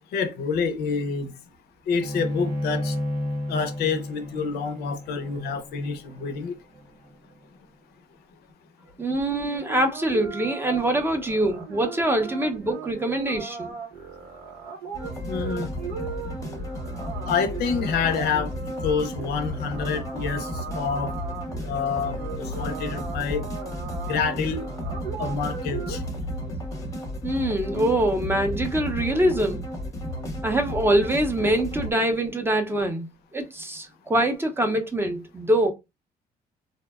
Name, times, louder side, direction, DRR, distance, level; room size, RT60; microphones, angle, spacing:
voice 1, 0.1-1.3 1.9-3.0 3.5-6.5 15.2-15.7 17.3-18.5 18.8-21.1 21.6-23.4 24.1-24.7 25.2-26.0 27.7-27.9, left 5 dB, 70° left, 0.5 m, -27 dB
Bowed string instrument, 2.0-7.3, left 1 dB, 50° right, 0.8 m, -32 dB
voice 2, 9.0-13.7 27.2-29.6 30.4-35.7, right 1 dB, 15° right, 0.5 m, -24 dB
sound 1, 9.5-26.0, right 6 dB, 85° right, 0.9 m, -38 dB
sound 2, 14.9-31.9, equal, 20° left, 0.7 m, -33 dB
2.6 x 2.1 x 2.3 m
cardioid pair, 110°, 17 cm